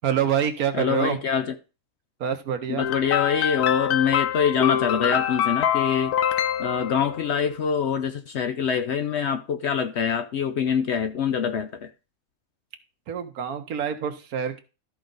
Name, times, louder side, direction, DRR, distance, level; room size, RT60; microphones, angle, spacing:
voice 1, 0.0-1.2 2.2-2.9 13.1-14.6, right 8 dB, 75° right, 1.5 m, -26 dB
voice 2, 0.7-1.5 2.7-6.1 6.6-11.9, left 7 dB, 60° left, 0.7 m, -25 dB
sound 1, 2.8-7.4, left 10 dB, 90° left, 1.3 m, -25 dB
13.0 x 5.0 x 3.9 m
omnidirectional pair, 1.6 m